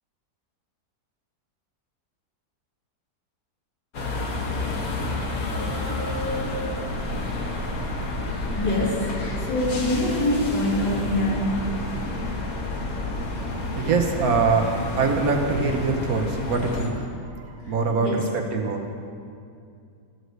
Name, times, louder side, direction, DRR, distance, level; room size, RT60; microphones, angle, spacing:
sound 1, 3.9-16.9, left 2 dB, 60° left, 1.6 m, -29 dB
voice 1, 8.5-11.8 17.6-18.3, left 1 dB, 90° left, -4 dB, 2.7 m, -25 dB
voice 2, 13.8-17.1 17.7-18.8, right 4 dB, 65° right, 2 dB, 1.3 m, -23 dB
13.0 x 4.8 x 8.0 m, 2.4 s
omnidirectional pair, 1.8 m